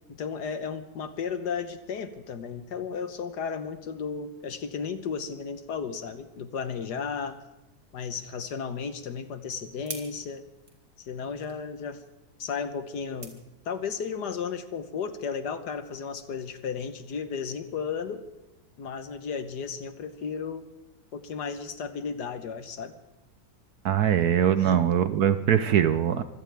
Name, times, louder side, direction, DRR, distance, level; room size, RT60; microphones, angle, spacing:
voice 1, 0.1-7.4 7.9-10.4 11.0-12.0 12.4-13.4 13.6-18.2 18.8-20.7 21.1-22.9 24.6-24.8, left 6 dB, 65° left, 10 dB, 1.6 m, -34 dB
sound 1, 9.6-14.2, right 2 dB, 25° right, 2.3 m, -48 dB
voice 2, 23.8-26.2, right 9 dB, 65° right, 12 dB, 1.1 m, -22 dB
24.5 x 17.0 x 3.5 m, 0.95 s
omnidirectional pair, 2.1 m